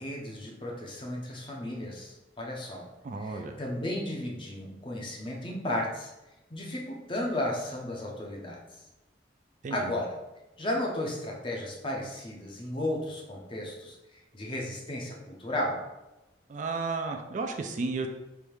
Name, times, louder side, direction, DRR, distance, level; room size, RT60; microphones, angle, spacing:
voice 1, 0.0-2.9 3.2-6.1 6.5-8.8 9.7-10.2 10.6-15.9, left 1 dB, 30° left, -1 dB, 0.7 m, -34 dB
voice 2, 3.0-3.6 9.6-9.9 16.5-18.1, right 3 dB, 45° right, 5 dB, 0.3 m, -33 dB
3.4 x 2.7 x 4.6 m, 1.0 s
head